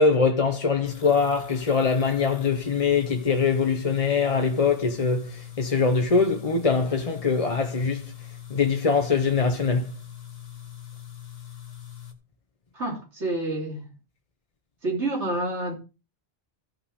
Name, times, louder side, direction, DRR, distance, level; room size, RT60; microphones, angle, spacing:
voice 1, 0.0-8.1 8.5-10.0, left 4 dB, 35° left, 0.9 m, -23 dB
sound 1, 0.8-12.1, left 11 dB, 60° left, 1.7 m, -42 dB
voice 2, 12.7-13.9 14.8-15.7, right 2 dB, 85° right, 3.8 m, -28 dB
14.5 x 5.6 x 5.0 m
omnidirectional pair, 1.1 m